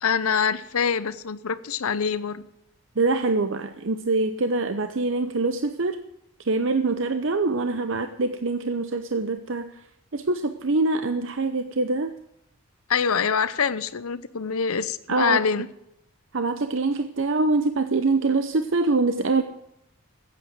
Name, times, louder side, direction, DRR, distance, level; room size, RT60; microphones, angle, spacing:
voice 1, 0.0-2.5 12.9-15.7, left 6 dB, 80° left, 15 dB, 0.7 m, -25 dB
voice 2, 3.0-6.0 6.5-9.7 10.1-12.1 15.1-15.4 16.3-19.4, right 3 dB, 60° right, 8 dB, 0.7 m, -24 dB
14.5 x 8.5 x 8.0 m, 0.80 s
head